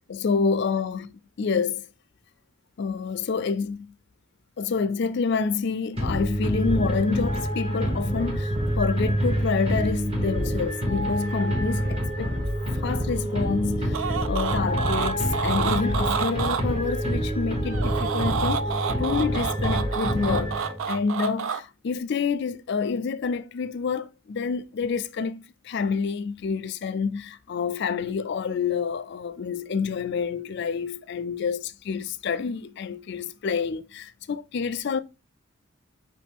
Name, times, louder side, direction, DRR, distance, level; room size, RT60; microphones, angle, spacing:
voice 1, 0.1-1.1 1.4-1.9 2.8-3.9 4.6-12.3 12.8-18.7 19.0-35.0, left 5 dB, 55° left, 0.4 m, -28 dB
sound 1, 5.9-21.0, equal, 30° right, 1.0 m, -27 dB
sound 2, 13.9-16.6 17.6-21.6, right 7 dB, 70° right, 0.4 m, -29 dB
5.1 x 3.1 x 3.4 m
head